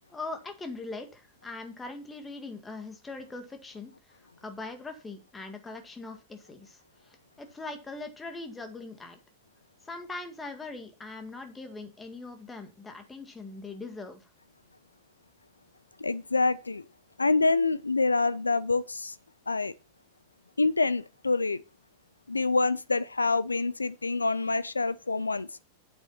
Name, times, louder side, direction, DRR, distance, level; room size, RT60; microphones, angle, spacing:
voice 1, 0.1-3.9 4.4-9.2 9.8-14.3, left 3 dB, 15° left, 2.0 m, -41 dB
voice 2, 16.0-16.8 17.2-19.1 19.5-19.7 20.6-21.6 22.3-25.5, left 3 dB, 80° left, 0.4 m, -26 dB
8.8 x 8.0 x 4.2 m
figure-of-eight pair, 90°, 0 cm